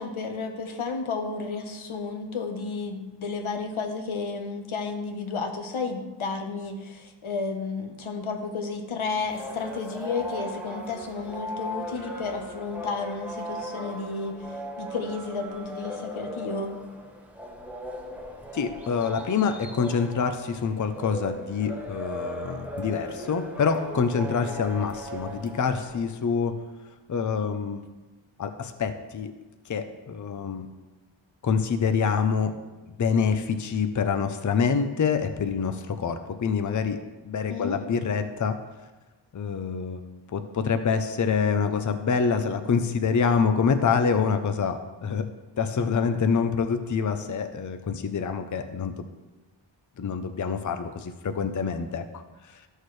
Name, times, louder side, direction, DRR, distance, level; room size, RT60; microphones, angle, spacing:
voice 1, 0.0-16.8 37.5-37.8, left 4 dB, 90° left, 4 dB, 1.1 m, -32 dB
sound 1, 9.2-26.2, equal, 5° right, 1.0 m, -38 dB
voice 2, 18.5-26.5 27.1-27.9 28.4-29.3 29.7-30.7 31.4-32.5 33.0-38.6 39.3-40.0 40.3-45.3 45.6-49.1 50.0-52.2 52.5-52.6, left 6 dB, 40° left, 8 dB, 0.6 m, -26 dB
13.0 x 6.5 x 3.2 m, 1.2 s
wide cardioid pair, 130°, 47 cm